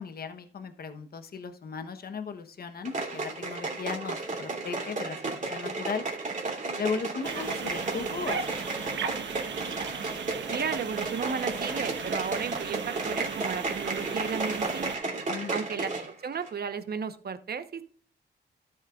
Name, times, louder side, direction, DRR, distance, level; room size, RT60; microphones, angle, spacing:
voice 1, 0.0-6.0 6.8-9.2 15.3-15.6, left 5 dB, 55° left, 8 dB, 1.0 m, -37 dB
sound 1, 2.8-16.1 16.4-16.5, right 3 dB, 45° right, 3.1 m, -33 dB
sound 2, 7.2-15.0, right 6 dB, 85° right, 1.3 m, -37 dB
voice 2, 10.5-14.9 15.5-17.8, right 6 dB, 60° right, 10 dB, 1.1 m, -34 dB
13.0 x 7.3 x 2.5 m, 0.43 s
cardioid pair, 95°, 18 cm